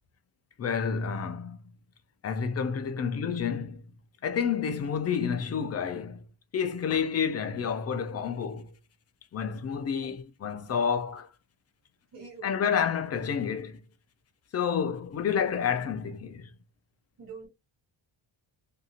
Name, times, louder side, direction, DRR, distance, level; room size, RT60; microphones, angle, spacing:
voice 1, 0.6-1.6 2.2-3.8 4.2-6.2 6.5-8.7 9.3-11.3 12.4-13.8 14.5-16.5, left 7 dB, 35° left, 0.4 m, -29 dB
voice 2, 12.1-12.6 17.2-17.5, right 5 dB, 45° right, 1.7 m, -45 dB
2.7 x 2.4 x 2.8 m
cardioid pair, 145°, 48 cm